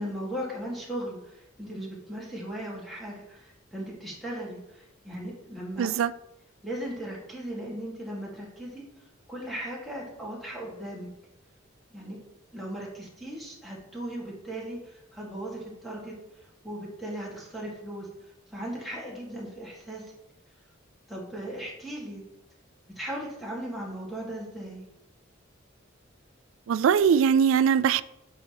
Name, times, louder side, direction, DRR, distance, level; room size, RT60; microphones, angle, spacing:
voice 1, 0.0-5.9 6.6-8.9 9.3-11.1 11.9-12.2 12.5-16.1 16.6-18.1 18.5-20.0 21.1-22.2 23.0-24.8, right 1 dB, ahead, -4 dB, 1.8 m, -37 dB
voice 2, 5.8-6.1 26.7-28.0, right 7 dB, 70° right, 16 dB, 0.3 m, -21 dB
8.4 x 4.9 x 2.9 m, 0.87 s
head